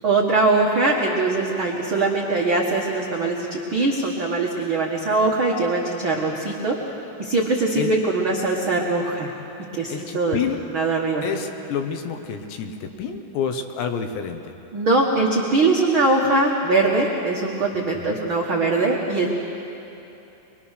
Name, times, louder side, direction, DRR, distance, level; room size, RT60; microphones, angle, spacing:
voice 1, 0.0-6.8 7.2-9.3 9.7-10.4 10.7-11.2 14.7-19.3, right 3 dB, 75° right, -2 dB, 1.1 m, -21 dB
voice 2, 9.9-10.6 11.2-14.5 17.9-18.2, left 7 dB, 90° left, 6 dB, 3.4 m, -29 dB
23.0 x 23.0 x 6.5 m, 3.0 s
omnidirectional pair, 4.8 m